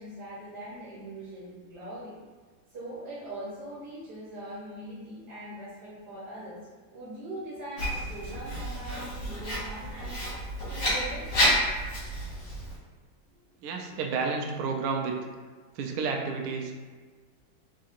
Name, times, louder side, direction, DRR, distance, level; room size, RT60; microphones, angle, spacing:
voice 1, 0.0-2.2 2.7-11.3, right 1 dB, 60° right, -7 dB, 1.5 m, -41 dB
Writing, 7.8-12.8, equal, 60° left, 2.3 m, -30 dB
sound 1, 7.8-11.1 11.4-11.7 12.3-12.4, left 1 dB, 25° right, 1.0 m, -44 dB
voice 2, 13.6-15.2 15.8-16.8, right 4 dB, 75° right, 2 dB, 0.9 m, -31 dB
4.2 x 3.7 x 2.5 m, 1.4 s
omnidirectional pair, 2.2 m